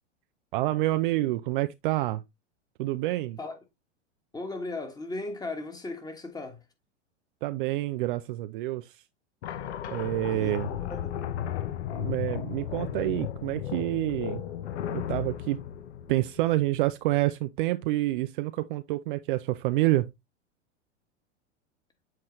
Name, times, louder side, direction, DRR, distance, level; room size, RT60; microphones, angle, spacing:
voice 1, 0.5-2.2 2.8-3.4 7.4-9.0 9.9-10.7 11.9-14.4 14.9-15.6 16.1-20.1, right 17 dB, 45° right, 0.4 m, -28 dB
voice 2, 4.3-6.6 10.2-10.5 10.9-11.2, left 2 dB, 10° left, 1.4 m, -36 dB
sound 1, 9.4-16.8, left 10 dB, 60° left, 0.9 m, -35 dB
7.7 x 4.2 x 3.1 m
hypercardioid pair, 95°, 37 cm